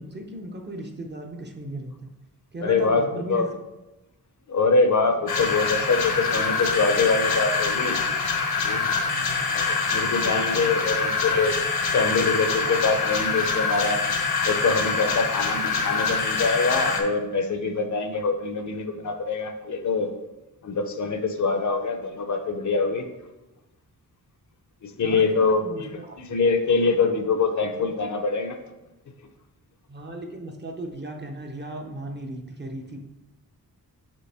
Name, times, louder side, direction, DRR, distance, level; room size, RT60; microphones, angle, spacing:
voice 1, 0.0-1.9 2.5-3.4 9.1-9.5 10.2-10.7 25.0-26.1 29.9-33.0, right 1 dB, 30° right, 3 dB, 0.6 m, -36 dB
voice 2, 2.6-3.5 4.5-8.0 8.6-9.0 9.5-11.6 11.9-14.0 14.4-20.1 20.6-23.1 24.8-28.6, left 4 dB, 55° left, 6 dB, 0.6 m, -24 dB
sound 1, 5.3-17.0, left 4 dB, 85° left, 1.0 m, -25 dB
6.3 x 5.2 x 3.4 m, 1.0 s
wide cardioid pair, 160°, 36 cm